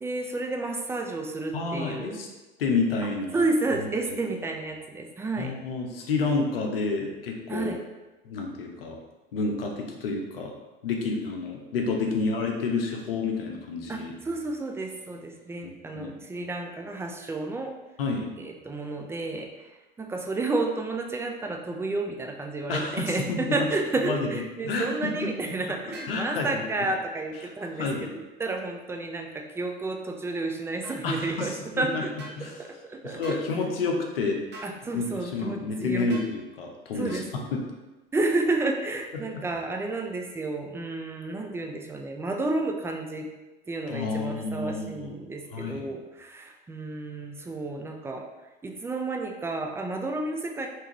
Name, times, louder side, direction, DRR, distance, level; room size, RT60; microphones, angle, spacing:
voice 1, 0.0-2.2 3.3-5.5 7.5-7.8 12.1-12.2 13.9-17.7 18.4-32.1 32.4-33.4 34.6-36.1 36.9-37.3 38.1-43.3 43.7-48.3 48.6-50.7, right 2 dB, 10° right, 2 dB, 0.3 m, -31 dB
voice 2, 1.5-2.3 2.6-3.4 4.1-4.2 5.4-7.8 8.2-9.0 9.3-10.5 10.8-14.1 15.6-16.1 18.0-18.3 22.7-23.7 24.0-24.3 24.6-25.3 26.1-26.6 27.8-28.1 31.0-32.0 32.4-32.5 33.0-34.4 34.9-37.6 39.1-39.4 43.9-45.9, left 4 dB, 75° left, 2 dB, 0.7 m, -30 dB
sound 1, 25.9-26.2 30.8-31.0 32.2-32.4 33.2-33.5 34.5-34.8 36.1-36.3 37.1-37.3, equal, 35° right, 1.1 m, -43 dB
3.5 x 2.8 x 2.9 m, 1.1 s
figure-of-eight pair, 70°, 29 cm